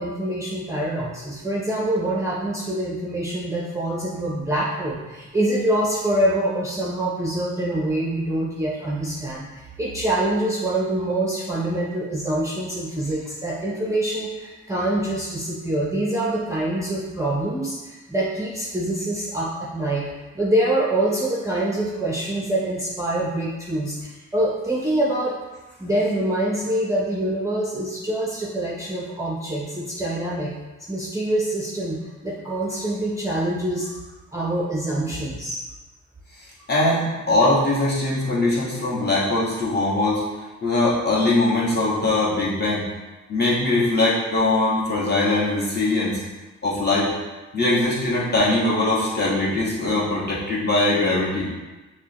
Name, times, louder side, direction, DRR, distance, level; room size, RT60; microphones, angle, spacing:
voice 1, 0.0-20.1 20.3-24.0 24.3-25.4 25.8-30.5 30.9-33.9 34.3-35.6, right 1 dB, 10° right, -5 dB, 0.5 m, -25 dB
voice 2, 36.7-40.2 40.6-42.8 43.3-46.2 46.6-47.1 47.5-51.5, left 2 dB, 35° left, -7 dB, 1.3 m, -21 dB
5.9 x 2.1 x 2.8 m, 1.2 s
cardioid pair, 95°, 31 cm